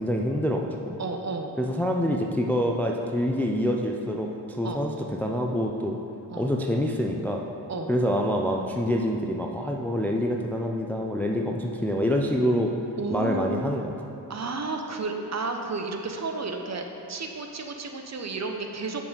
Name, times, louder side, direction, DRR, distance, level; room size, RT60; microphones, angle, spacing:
voice 1, 0.0-0.9 1.6-4.9 5.2-6.0 6.4-7.4 7.9-12.7 13.1-13.9, equal, 5° left, 1 dB, 0.4 m, -26 dB
voice 2, 1.0-1.5 4.6-4.8 6.3-6.5 7.7-7.9 13.0-13.8 14.3-19.1, right 3 dB, 40° right, 4 dB, 0.7 m, -32 dB
6.9 x 4.8 x 3.9 m, 2.8 s
cardioid pair, 50°, 43 cm